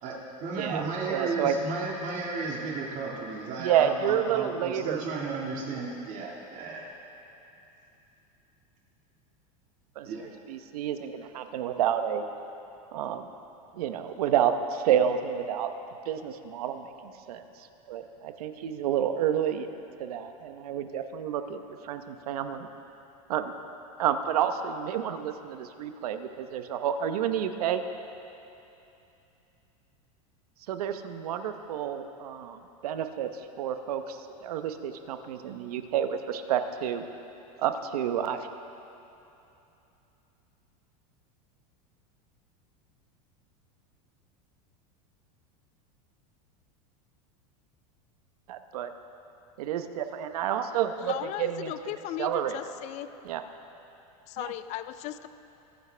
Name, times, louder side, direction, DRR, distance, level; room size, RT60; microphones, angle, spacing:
voice 1, 0.0-6.9 10.1-10.3, right 3 dB, 40° right, -3 dB, 2.1 m, -34 dB
voice 2, 0.5-1.6 3.6-5.0 10.0-10.1 10.5-12.2 12.9-13.3 13.7-15.7 16.0-17.4 17.9-19.7 20.0-22.7 23.3-23.5 24.0-27.8 30.7-33.3 33.6-37.0 37.6-38.5 48.5-48.9 49.6-51.1 51.4-51.7 52.2-52.6 53.2-53.4 54.4-54.5, right 9 dB, 85° right, 8 dB, 0.9 m, -29 dB
voice 3, 51.0-53.1 54.3-55.3, left 13 dB, 40° left, 12 dB, 0.4 m, -37 dB
23.5 x 9.6 x 3.4 m, 2.9 s
supercardioid pair, 135°, 19 cm